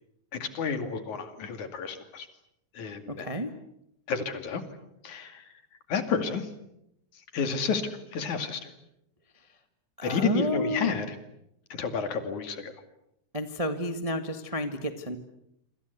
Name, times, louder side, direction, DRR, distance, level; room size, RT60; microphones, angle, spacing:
voice 1, 0.3-2.3 2.7-3.3 4.1-4.6 5.0-5.5 5.9-6.5 7.3-8.7 10.0-11.2 11.7-12.7, left 6 dB, 70° left, 9 dB, 3.8 m, -31 dB
voice 2, 3.2-3.5 10.0-10.9 13.3-15.2, equal, 20° right, 8 dB, 1.0 m, -30 dB
27.0 x 26.0 x 8.2 m, 0.80 s
omnidirectional pair, 3.6 m